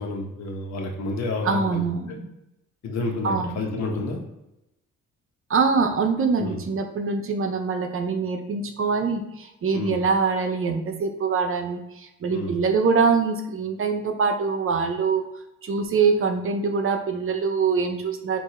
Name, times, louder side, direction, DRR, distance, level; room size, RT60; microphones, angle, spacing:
voice 1, 0.0-1.8 2.1-2.2 2.8-4.2 6.4-6.6 9.7-10.0 12.3-12.5, left 2 dB, 65° left, 0 dB, 1.4 m, -29 dB
voice 2, 1.4-2.3 3.2-3.6 5.5-15.2 15.6-18.4, right 5 dB, 45° right, 5 dB, 0.7 m, -24 dB
4.5 x 2.7 x 4.3 m, 0.89 s
cardioid pair, 90°, 30 cm